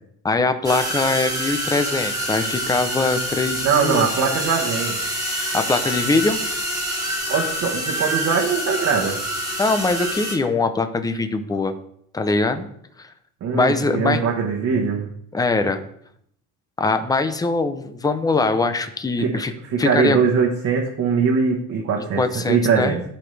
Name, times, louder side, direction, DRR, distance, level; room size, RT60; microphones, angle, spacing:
voice 1, 0.2-4.1 5.5-6.4 9.6-11.7 12.1-12.7 13.0-13.1 13.5-14.2 15.3-15.8 16.8-19.5 19.8-20.2 22.1-23.0, left 3 dB, 10° left, 8 dB, 0.6 m, -22 dB
sound 1, 0.6-10.4, right 1 dB, 10° right, 1.7 m, -26 dB
voice 2, 3.6-5.0 7.3-9.2 13.4-15.1 19.2-19.3 19.7-23.0, right 6 dB, 55° right, -2 dB, 1.3 m, -21 dB
14.5 x 5.0 x 3.3 m, 0.70 s
cardioid pair, 150°, 33 cm